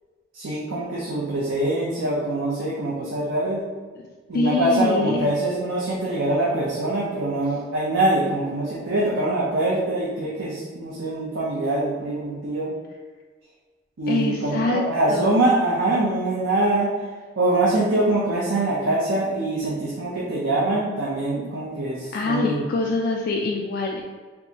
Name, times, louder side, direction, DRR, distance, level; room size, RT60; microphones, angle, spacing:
voice 1, 0.3-3.6 4.3-12.7 14.0-16.9 17.4-22.6, right 2 dB, 85° right, -5 dB, 0.6 m, -24 dB
voice 2, 4.3-5.3 14.1-14.8 15.1-15.4 22.1-24.0, left 3 dB, 55° left, 0 dB, 0.3 m, -24 dB
4.5 x 2.6 x 2.8 m, 1.4 s
head